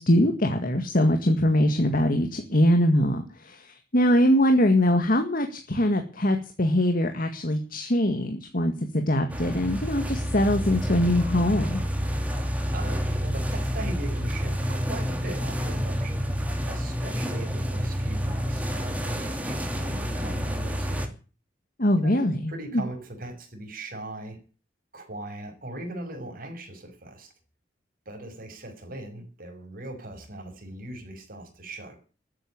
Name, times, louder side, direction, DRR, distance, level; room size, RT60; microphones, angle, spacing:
voice 1, 0.0-11.8 21.8-22.8, left 1 dB, 50° left, 6 dB, 2.0 m, -23 dB
sound 1, 9.3-21.1, equal, 10° right, 2.8 m, -29 dB
voice 2, 12.4-16.2 16.6-21.1 22.0-22.2 22.5-24.4 24.9-27.3 28.1-32.0, right 1 dB, 50° right, 5 dB, 5.9 m, -39 dB
13.5 x 9.9 x 9.7 m, 0.37 s
head